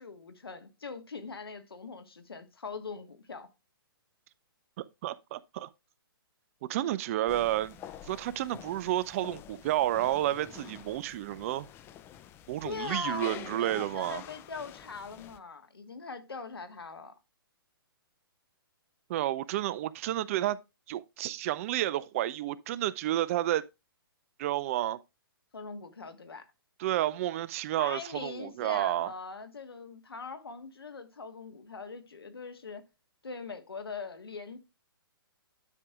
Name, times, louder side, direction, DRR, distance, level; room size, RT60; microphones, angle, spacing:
voice 1, 0.0-3.5 6.8-6.9 12.6-17.1 25.5-26.4 27.8-32.8 33.2-34.6, left 4 dB, 85° left, 1.4 m, -41 dB
voice 2, 4.8-5.7 6.7-7.8 8.0-11.7 12.5-14.2 19.1-20.6 20.9-23.6 24.4-25.0 26.8-29.1, right 14 dB, 35° right, 0.4 m, -31 dB
sound 1, 7.3-15.4, left 11 dB, 20° left, 0.4 m, -48 dB
10.5 x 6.1 x 2.3 m
hypercardioid pair, 130°, 12 cm